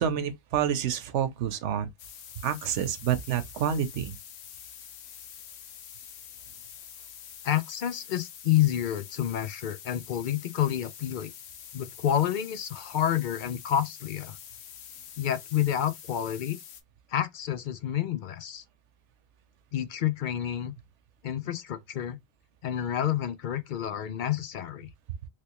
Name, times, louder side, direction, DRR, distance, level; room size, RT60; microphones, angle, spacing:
voice 1, 0.0-1.9 2.4-4.1, right 9 dB, 80° right, 1.0 m, -28 dB
sound 1, 2.0-16.8, left 9 dB, 70° left, 0.9 m, -46 dB
voice 2, 7.4-11.3 11.7-14.4 15.2-16.6 17.1-18.6 19.7-20.7 21.2-22.2 22.6-24.9, left 10 dB, 55° left, 0.6 m, -29 dB
3.3 x 3.0 x 2.9 m
omnidirectional pair, 1.2 m